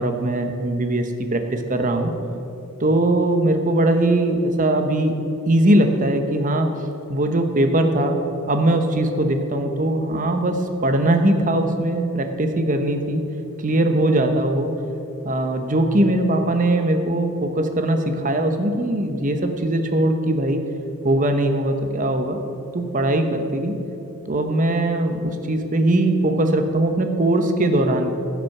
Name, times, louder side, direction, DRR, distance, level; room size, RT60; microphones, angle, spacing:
voice 1, 0.0-2.1 2.8-5.1 5.5-6.7 7.1-8.2 8.5-13.2 13.6-14.7 15.2-20.6 21.0-22.4 22.7-23.7 24.3-28.1, right 1 dB, 35° right, 6 dB, 0.9 m, -20 dB
16.0 x 5.9 x 6.0 m, 2.8 s
head